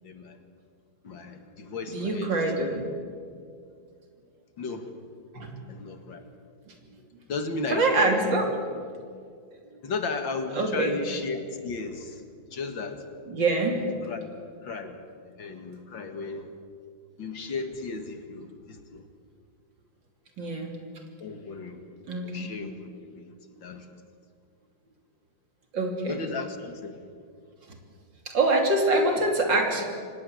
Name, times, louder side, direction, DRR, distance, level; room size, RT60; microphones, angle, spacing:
voice 1, 0.0-0.4 1.0-2.8 4.6-4.9 5.7-6.2 7.3-8.8 9.8-12.2 12.5-13.0 14.0-14.3 14.6-15.0 15.2-16.5 17.2-19.0 21.2-21.8 22.2-23.3 23.6-24.0 26.1-27.0, left 4 dB, 70° left, 7 dB, 2.5 m, -35 dB
voice 2, 1.9-2.9 5.3-5.5 7.7-8.5 10.5-10.9 13.3-13.8 20.4-20.7 22.1-22.5 25.7-26.2 28.3-29.8, right 2 dB, 65° right, 2 dB, 3.8 m, -25 dB
25.5 x 18.5 x 8.0 m, 2.2 s
omnidirectional pair, 2.2 m